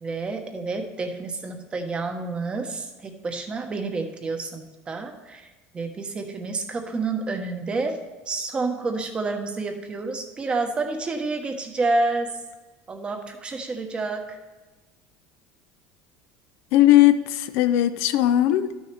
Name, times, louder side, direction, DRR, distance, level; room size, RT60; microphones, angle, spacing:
voice 1, 0.0-5.5 5.7-8.0 8.3-12.3 12.9-14.4, right 3 dB, 20° right, 1.1 m, -29 dB
voice 2, 16.7-18.8, left 13 dB, 70° left, 0.5 m, -18 dB
12.0 x 6.4 x 3.4 m
cardioid pair, 130°, 5 cm